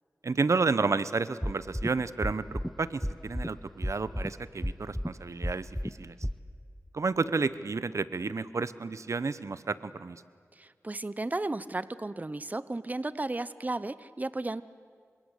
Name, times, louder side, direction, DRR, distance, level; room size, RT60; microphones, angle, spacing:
voice 1, 0.2-6.1 6.9-10.2, right 4 dB, 65° right, 15 dB, 0.9 m, -31 dB
sound 1, 1.4-1.9 2.2-2.7 3.0-3.5 3.8-4.3 4.6-5.1 5.4-5.9 6.2-6.3, equal, ahead, 0.8 m, -31 dB
voice 2, 10.5-14.6, right 2 dB, 30° right, 16 dB, 0.8 m, -34 dB
28.0 x 26.0 x 8.2 m, 2.1 s
wide cardioid pair, 55°, 6 cm